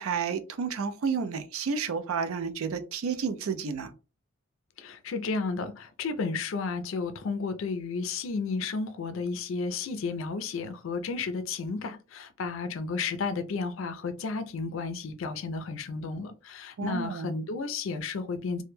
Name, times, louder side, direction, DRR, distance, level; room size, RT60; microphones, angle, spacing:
voice 1, 0.0-3.9 16.8-17.3, right 5 dB, 75° right, 0.4 m, -31 dB
voice 2, 4.8-18.6, left 4 dB, 65° left, 0.4 m, -32 dB
2.1 x 2.1 x 3.1 m
head